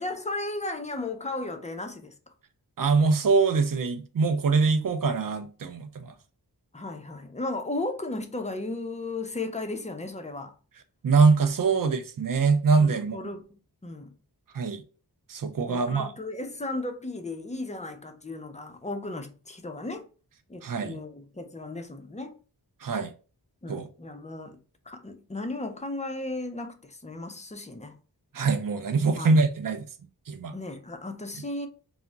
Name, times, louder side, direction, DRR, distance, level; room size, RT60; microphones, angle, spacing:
voice 1, 0.0-2.1 6.7-10.5 11.7-11.9 12.8-14.1 15.7-20.1 20.5-22.3 23.6-24.6 24.9-28.0 29.2-29.4 30.5-31.7, left 2 dB, 20° left, 0.4 m, -35 dB
voice 2, 2.8-6.1 11.0-13.3 14.5-14.8 15.3-16.1 20.6-21.0 22.8-23.1 23.7-23.9 28.3-29.9 30.3-30.5, right 4 dB, 55° right, 0.4 m, -23 dB
2.3 x 2.0 x 3.7 m
wide cardioid pair, 50°, 40 cm